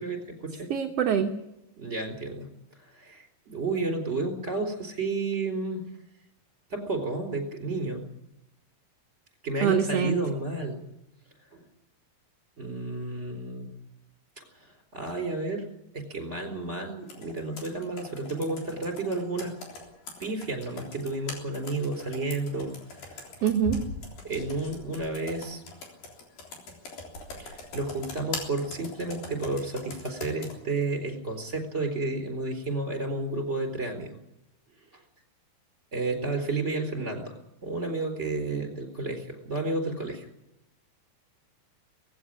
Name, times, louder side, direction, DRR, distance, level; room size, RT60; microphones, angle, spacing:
voice 1, 0.0-0.7 1.8-2.5 2.8-5.9 6.7-8.1 9.4-10.8 11.5-11.6 12.6-13.7 14.5-15.7 15.9-19.5 20.2-23.3 24.2-25.6 27.4-34.2 35.9-37.4 37.6-40.3, right 3 dB, 20° right, 4 dB, 4.2 m, -31 dB
voice 2, 0.7-1.3 9.6-10.2 23.4-23.8, right 7 dB, 60° right, 3 dB, 1.8 m, -24 dB
Computer keyboard, 17.1-30.6, left 3 dB, 80° left, 5.3 m, -42 dB
19.0 x 16.0 x 10.0 m, 0.87 s
omnidirectional pair, 3.9 m